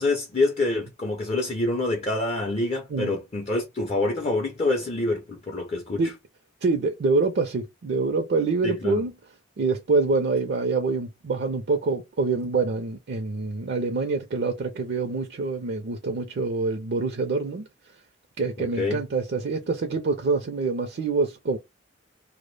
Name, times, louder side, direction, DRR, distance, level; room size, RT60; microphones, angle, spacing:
voice 1, 0.0-6.0 8.6-9.0 18.6-19.0, left 2 dB, 35° left, 0.5 m, -26 dB
voice 2, 6.6-9.1 9.6-17.7 18.4-21.6, right 3 dB, 65° right, 0.4 m, -26 dB
2.1 x 2.0 x 3.1 m
head